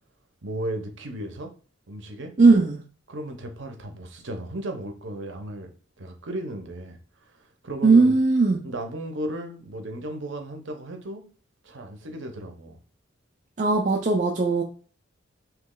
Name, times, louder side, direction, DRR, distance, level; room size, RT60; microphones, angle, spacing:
voice 1, 0.4-1.5 1.9-2.3 3.1-5.7 6.0-7.0 7.6-8.2 8.6-11.2 11.6-12.8, right 1 dB, 65° right, 0.9 m, -35 dB
voice 2, 2.4-2.8 7.8-8.6 13.6-14.6, right 3 dB, 40° right, 0.5 m, -18 dB
3.1 x 3.0 x 3.8 m
head